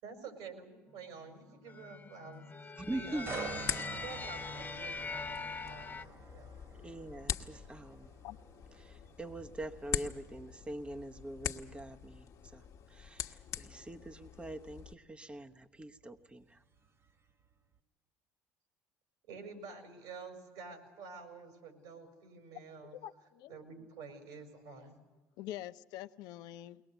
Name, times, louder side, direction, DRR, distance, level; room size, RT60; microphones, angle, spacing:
voice 1, 0.0-3.5 4.0-6.5 19.3-22.9 23.5-25.0, right 4 dB, 75° right, 6 dB, 5.1 m, -49 dB
sound 1, 1.4-6.0, left 4 dB, 25° left, 0.7 m, -42 dB
sound 2, 2.8-14.9, left 8 dB, 50° left, 1.4 m, -44 dB
voice 2, 2.8-3.3 6.8-8.1 8.8-12.6 12.9-16.6, right 1 dB, 15° right, 6 dB, 1.0 m, -43 dB
sound 3, 3.3-17.1 17.5-17.8, right 4 dB, 40° right, 1.9 m, -50 dB
voice 3, 22.9-23.6 25.4-26.8, left 13 dB, 70° left, 10 dB, 0.7 m, -45 dB
22.0 x 19.5 x 8.0 m, 1.2 s
supercardioid pair, 75°, 7 cm